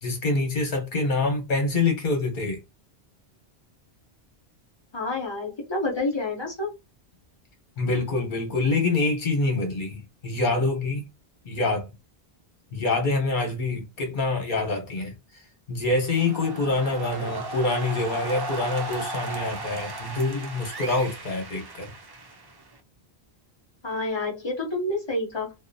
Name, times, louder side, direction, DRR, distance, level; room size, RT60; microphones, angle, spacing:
voice 1, 0.0-2.6 7.8-11.0 11.4-11.9 12.7-15.1 15.7-21.9, left 3 dB, 55° left, 1.0 m, -26 dB
voice 2, 4.9-6.8 23.8-25.5, left 2 dB, 30° left, 0.7 m, -28 dB
sound 1, 15.9-22.8, right 2 dB, 40° right, 0.3 m, -36 dB
2.6 x 2.1 x 2.6 m
omnidirectional pair, 1.0 m